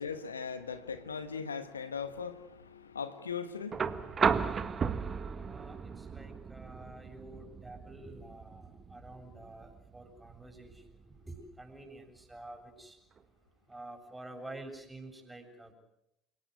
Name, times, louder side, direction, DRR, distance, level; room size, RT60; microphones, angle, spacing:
voice 1, 0.0-5.1 5.6-5.8, left 6 dB, 85° left, 1.2 m, -40 dB
sound 1, 3.7-11.8 13.2-13.3, right 6 dB, 35° right, 1.6 m, -35 dB
voice 2, 5.5-13.0 13.7-15.7, right 2 dB, 10° right, 7.6 m, -49 dB
28.5 x 18.5 x 8.0 m
figure-of-eight pair, 60°, 0 cm